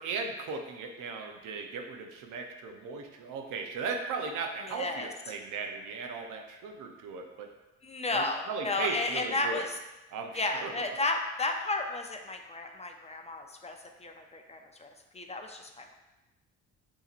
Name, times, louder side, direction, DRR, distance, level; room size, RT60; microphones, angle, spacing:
voice 1, 0.0-7.5 8.1-9.7 10.1-10.7, right 4 dB, 85° right, 3 dB, 0.7 m, -37 dB
voice 2, 4.6-5.1 7.8-9.8 10.3-15.9, left 2 dB, 20° left, 4 dB, 0.5 m, -33 dB
6.8 x 2.9 x 2.5 m, 1.0 s
cardioid pair, 90°, 30 cm